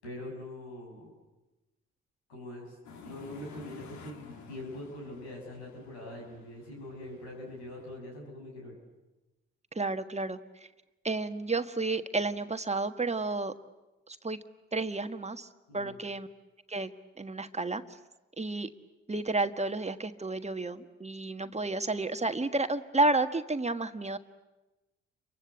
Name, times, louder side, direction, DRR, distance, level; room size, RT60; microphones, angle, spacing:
voice 1, 0.0-1.1 2.3-2.8 3.0-8.8 15.7-16.0, left 1 dB, 85° left, 0 dB, 6.9 m, -43 dB
sound 1, 2.8-8.0, left 4 dB, 65° left, 2.6 m, -52 dB
voice 2, 9.7-10.7 11.0-13.5 14.1-14.4 14.7-15.5 15.7-16.3 16.7-16.9 17.2-17.8 18.4-18.7 19.1-24.2, right 2 dB, 20° right, 8 dB, 1.5 m, -31 dB
29.0 x 24.0 x 8.1 m, 1.1 s
hypercardioid pair, 45°, 31 cm